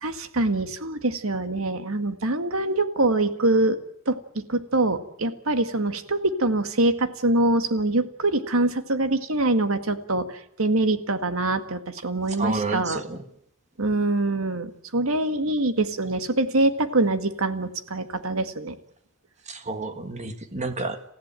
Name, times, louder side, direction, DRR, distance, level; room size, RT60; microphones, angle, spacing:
voice 1, 0.0-3.8 4.1-4.2 4.5-10.3 10.6-13.0 13.8-18.8, right 2 dB, 80° right, 1.9 m, -24 dB
voice 2, 12.4-13.2 19.5-21.0, right 3 dB, 35° right, 1.7 m, -30 dB
28.0 x 15.5 x 9.0 m
head